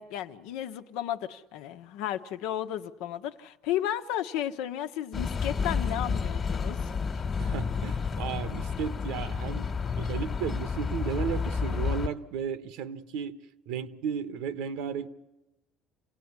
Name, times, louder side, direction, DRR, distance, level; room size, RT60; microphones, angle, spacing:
voice 1, 0.0-6.8, left 11 dB, 80° left, 1.2 m, -33 dB
sound 1, 5.1-12.1, left 5 dB, 25° left, 1.5 m, -30 dB
voice 2, 7.4-15.1, right 7 dB, 80° right, 1.2 m, -34 dB
28.0 x 17.5 x 9.7 m
cardioid pair, 150°, 0 cm